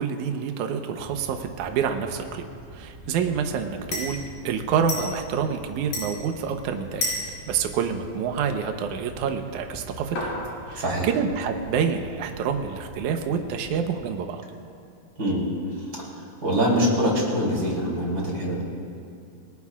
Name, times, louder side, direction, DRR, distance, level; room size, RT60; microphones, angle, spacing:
voice 1, 0.0-2.4 2.7-7.1 7.5-10.3 10.7-14.4, right 7 dB, 70° right, 5 dB, 2.1 m, -27 dB
sound 1, 1.0-13.8, left 1 dB, 75° left, 6.7 m, -37 dB
voice 2, 10.8-11.1 15.2-15.5 16.0-16.1 16.4-18.7, equal, 30° right, -4 dB, 3.9 m, -24 dB
28.5 x 20.0 x 2.5 m, 2.5 s
omnidirectional pair, 4.1 m